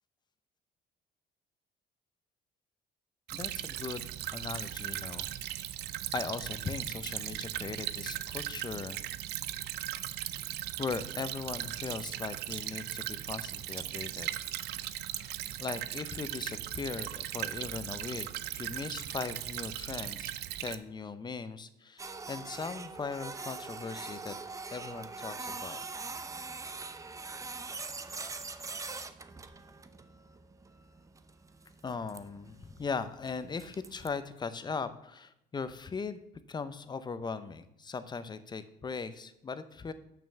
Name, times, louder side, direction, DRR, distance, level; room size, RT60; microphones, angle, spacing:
voice 1, 3.3-4.1 4.3-5.3 6.1-9.0 10.8-14.3 15.1-15.3 15.6-20.3 20.6-24.3 24.7-25.8 31.8-36.2 36.5-39.9, left 5 dB, 25° left, 12 dB, 0.7 m, -39 dB
Stream / Trickle dribble, 3.3-20.8, right 13 dB, 80° right, 0.6 m, -38 dB
Printer, 22.0-34.1, right 4 dB, 20° right, 0.6 m, -43 dB
6.9 x 6.2 x 6.9 m, 0.81 s
cardioid pair, 110°, 17 cm